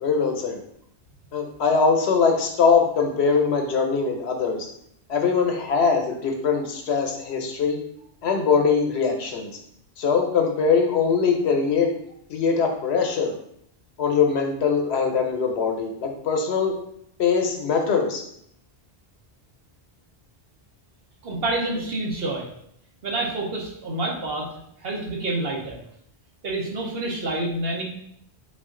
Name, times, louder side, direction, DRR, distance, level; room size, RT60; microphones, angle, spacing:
voice 1, 0.0-0.6 1.3-4.7 5.1-7.8 8.2-9.5 10.0-11.9 12.3-13.3 14.0-16.8 17.2-18.2, left 5 dB, 80° left, 3 dB, 0.9 m, -22 dB
voice 2, 21.2-22.5 23.0-25.8 26.4-27.8, right 2 dB, 65° right, -2 dB, 1.0 m, -28 dB
3.7 x 2.4 x 3.6 m, 0.70 s
omnidirectional pair, 1.1 m